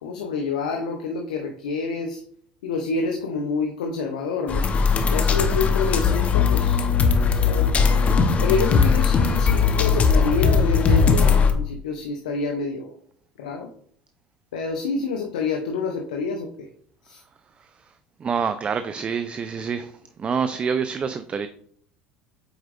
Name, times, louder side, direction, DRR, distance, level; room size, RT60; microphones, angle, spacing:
voice 1, 0.0-2.2 2.6-4.7 5.1-7.8 8.4-12.9 13.4-13.7 14.5-16.7 17.0-17.2, left 4 dB, 85° left, 2 dB, 0.7 m, -28 dB
sound 1, 4.5-11.5, left 5 dB, 35° left, 0.9 m, -19 dB
voice 2, 18.2-19.9 20.2-21.5, right 6 dB, 30° right, 11 dB, 0.4 m, -26 dB
7.9 x 4.6 x 2.5 m, 0.62 s
hypercardioid pair, 85°, 4 cm